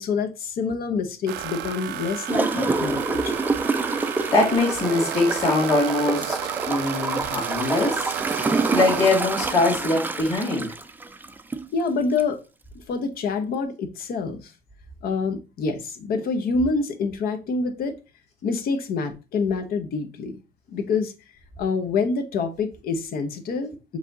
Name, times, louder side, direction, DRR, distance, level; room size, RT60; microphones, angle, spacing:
voice 1, 0.0-3.4 11.7-12.4 12.9-14.5 15.0-18.0 18.4-20.4 20.7-21.1 21.6-24.0, left 4 dB, 65° left, 0.8 m, -26 dB
sound 1, 1.3-9.5, right 12 dB, 80° right, 0.5 m, -33 dB
Gurgling / Toilet flush, 2.3-11.7 12.2-12.3, right 3 dB, 10° right, 0.4 m, -27 dB
voice 2, 4.3-6.4 6.7-8.1 8.4-10.7, left 2 dB, 30° left, 1.9 m, -22 dB
4.9 x 2.8 x 3.7 m
cardioid pair, 110°, 17 cm